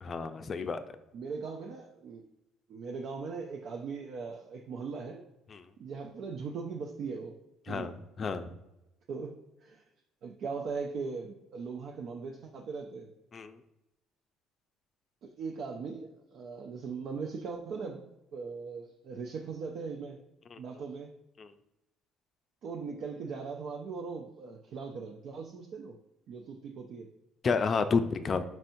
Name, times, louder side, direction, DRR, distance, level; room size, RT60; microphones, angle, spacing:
voice 1, 0.0-0.8 7.7-7.9 8.2-8.5 13.3-13.6 20.5-20.6 21.4-21.5 27.4-28.4, left 5 dB, 40° left, 9 dB, 0.4 m, -30 dB
voice 2, 1.1-2.2 2.7-5.2 5.8-7.4 7.7-8.0 9.1-9.8 10.2-13.1 15.2-20.2 20.6-21.1 22.6-25.9 26.3-27.1, right 5 dB, 60° right, 2 dB, 0.4 m, -39 dB
4.5 x 4.2 x 2.6 m, 0.92 s
supercardioid pair, 70°, 0 cm